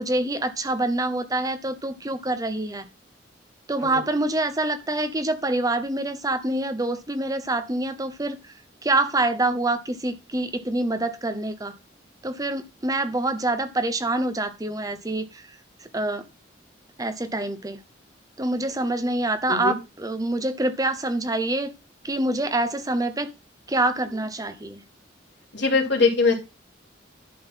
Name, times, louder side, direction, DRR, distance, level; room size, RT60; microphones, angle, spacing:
voice 1, 0.0-2.9 3.7-8.5 8.8-11.7 12.2-15.5 15.8-16.2 17.0-17.8 18.4-21.7 22.0-23.3 23.7-24.8, right 2 dB, 20° right, 10 dB, 0.8 m, -26 dB
voice 2, 25.5-26.3, left 4 dB, 70° left, 0 dB, 2.8 m, -21 dB
11.0 x 3.8 x 5.8 m, 0.27 s
head